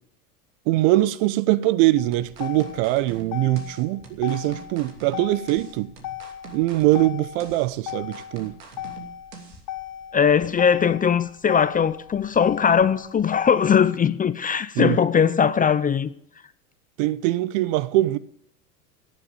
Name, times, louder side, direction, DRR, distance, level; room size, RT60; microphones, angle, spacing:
voice 1, 0.7-5.9 6.5-8.5 14.8-15.0 17.0-18.2, right 16 dB, 55° right, 0.8 m, -22 dB
Motor vehicle (road), 2.0-14.0, left 12 dB, 45° left, 2.7 m, -37 dB
sound 1, 2.1-9.6, right 6 dB, 85° right, 2.9 m, -44 dB
voice 2, 10.1-16.1, left 7 dB, 20° left, 0.6 m, -20 dB
16.5 x 7.4 x 7.0 m
hypercardioid pair, 95°, 46 cm